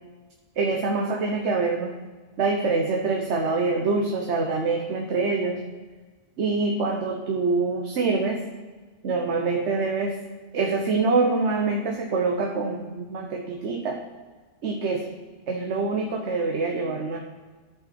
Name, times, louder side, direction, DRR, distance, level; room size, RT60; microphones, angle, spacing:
voice 1, 0.6-2.0 2.4-5.6 6.4-8.4 9.0-10.2 10.5-14.0 14.6-15.1 15.5-17.2, right 3 dB, 70° right, 1 dB, 1.2 m, -25 dB
13.5 x 5.2 x 4.4 m, 1.3 s
omnidirectional pair, 1.2 m